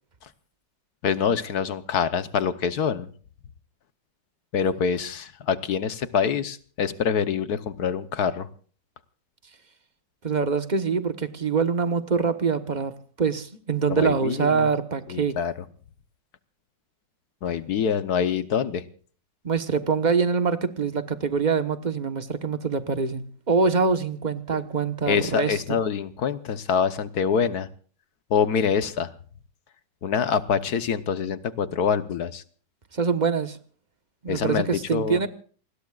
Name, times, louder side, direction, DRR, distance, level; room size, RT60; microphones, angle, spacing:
voice 1, 1.0-3.1 4.5-8.5 13.9-14.7 15.1-15.5 17.4-18.8 25.1-27.7 28.3-29.1 30.0-32.4 34.3-35.2, left 7 dB, 65° left, 12 dB, 1.4 m, -25 dB
voice 2, 10.2-15.4 19.4-25.8 32.9-33.6 34.2-35.3, right 5 dB, 30° right, 9 dB, 1.1 m, -24 dB
28.5 x 20.5 x 2.4 m, 0.43 s
omnidirectional pair, 1.9 m